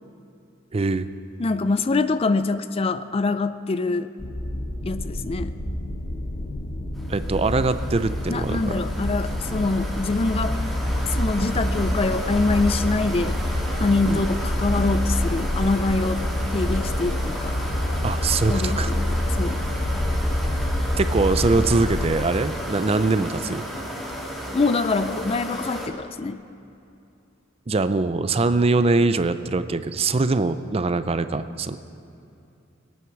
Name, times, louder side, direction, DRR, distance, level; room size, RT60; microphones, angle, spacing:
voice 1, 0.7-1.1 7.1-8.8 14.1-14.2 18.0-18.9 21.0-23.6 27.7-31.8, right 3 dB, 30° right, 12 dB, 0.5 m, -22 dB
voice 2, 1.4-4.1 4.8-5.5 8.3-10.6 11.1-13.3 13.8-16.2 16.5-17.6 18.5-19.6 24.5-26.4, left 3 dB, 30° left, 12 dB, 0.4 m, -24 dB
sound 1, 4.2-22.2, left 1 dB, 45° left, 1.1 m, -27 dB
sound 2, 6.9-25.9, equal, ahead, 1.9 m, -34 dB
21.0 x 9.4 x 5.9 m, 2.7 s
head